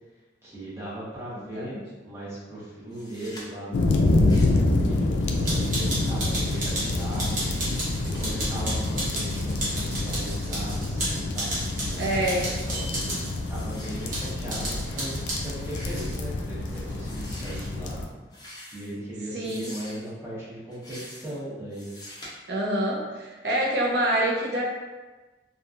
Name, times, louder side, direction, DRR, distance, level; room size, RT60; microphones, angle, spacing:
voice 1, 0.4-1.7 2.0-3.9 4.3-7.7 8.0-12.3 12.7-13.1 13.5-18.0 18.7-21.9, right 1 dB, 15° right, -9 dB, 0.9 m, -38 dB
voice 2, 1.3-1.8 12.0-12.5 19.3-19.7 22.5-24.6, right 1 dB, 65° right, -3 dB, 0.6 m, -26 dB
sound 1, 2.9-3.4 4.1-4.7 5.0-9.4 9.9-11.1 11.5-11.7 11.9-13.2 13.4-14.1 14.5-14.6 14.9-15.0 15.5-16.3 17.0-17.6 18.3-19.0 19.4-20.1 20.7-21.4 21.7-22.3, left 1 dB, 20° left, 0.5 m, -46 dB
sound 2, 3.7-18.1, left 2 dB, 85° left, 0.3 m, -27 dB
sound 3, 5.4-13.3 14.1-15.5 15.9-16.2 16.7-17.7, right 1 dB, 50° right, 0.9 m, -33 dB
2.9 x 2.3 x 2.4 m, 1.2 s
head